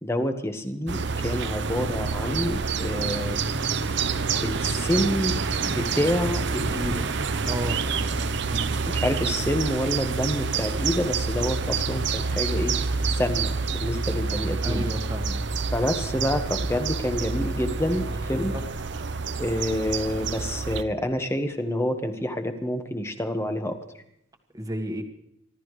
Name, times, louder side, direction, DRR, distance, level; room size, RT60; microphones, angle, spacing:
voice 1, 0.0-3.4 4.4-5.4 5.6-7.0 8.9-12.8 13.1-14.8 15.7-18.5 19.4-23.8, left 1 dB, 15° left, 6 dB, 1.4 m, -28 dB
sound 1, 0.9-20.8, right 4 dB, 60° right, 0.8 m, -28 dB
voice 2, 7.4-7.8 8.5-8.7 14.6-15.4 18.3-18.6 24.5-25.0, equal, 20° right, 4 dB, 1.7 m, -32 dB
25.5 x 13.0 x 3.3 m, 0.77 s
head